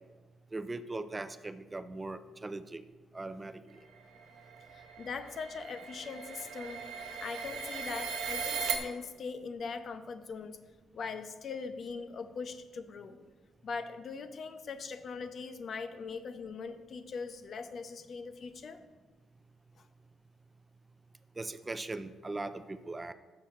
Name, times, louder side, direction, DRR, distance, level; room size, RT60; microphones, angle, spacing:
voice 1, 0.5-2.8 3.1-3.6 21.4-23.1, right 2 dB, 20° right, 12 dB, 0.5 m, -39 dB
sound 1, 4.0-8.8, right 6 dB, 85° right, 0.9 m, -38 dB
voice 2, 4.7-6.8 7.2-10.6 10.9-13.2 13.6-18.8, left 5 dB, 55° left, 9 dB, 0.6 m, -41 dB
6.6 x 6.1 x 5.7 m, 1.3 s
cardioid pair, 90°, 0 cm